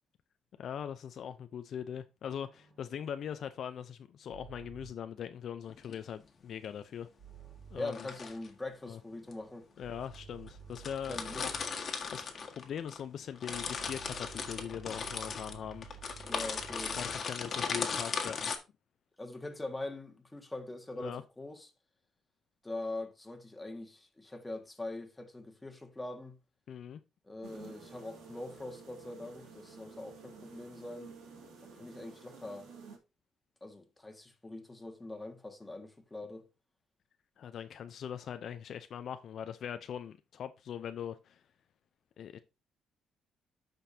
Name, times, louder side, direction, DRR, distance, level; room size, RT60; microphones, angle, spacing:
voice 1, 0.6-7.1 7.7-8.1 8.8-9.0 9.8-11.5 11.9-12.2 12.6-15.9 17.0-18.5 21.0-21.2 26.7-27.0 37.4-41.4 42.2-42.4, left 8 dB, 65° left, 0.6 m, -41 dB
sound 1, 2.4-5.1 7.2-8.0 8.9-11.8 13.5-17.4, right 8 dB, 45° right, 5.9 m, -53 dB
sound 2, 5.7-5.9 7.8-8.5 9.3-9.4 10.1-10.2 10.5-10.6 10.7-13.0 13.3-18.6, left 5 dB, 50° left, 1.6 m, -37 dB
voice 2, 7.7-9.6 11.1-11.5 16.2-17.0 19.2-21.7 22.6-26.4 27.2-31.1 31.7-32.7 33.6-36.5, left 2 dB, 15° left, 1.7 m, -43 dB
sound 3, 27.4-33.0, right 5 dB, 85° right, 2.6 m, -52 dB
13.0 x 5.2 x 2.8 m
cardioid pair, 90°, 0 cm